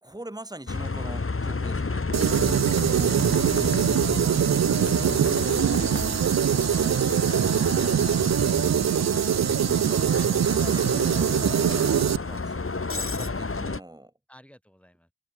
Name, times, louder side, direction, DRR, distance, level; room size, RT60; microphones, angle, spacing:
voice 1, 0.0-2.0 6.0-6.2 7.7-8.7 9.8-14.1, right 1 dB, 10° right, 2.0 m, -44 dB
Bus, 0.7-13.8, left 3 dB, 45° left, 1.6 m, -31 dB
sound 1, 2.1-12.2, right 9 dB, 60° right, 0.4 m, -23 dB
voice 2, 14.3-15.1, equal, 5° left, 7.3 m, -54 dB
wide cardioid pair, 60°, 31 cm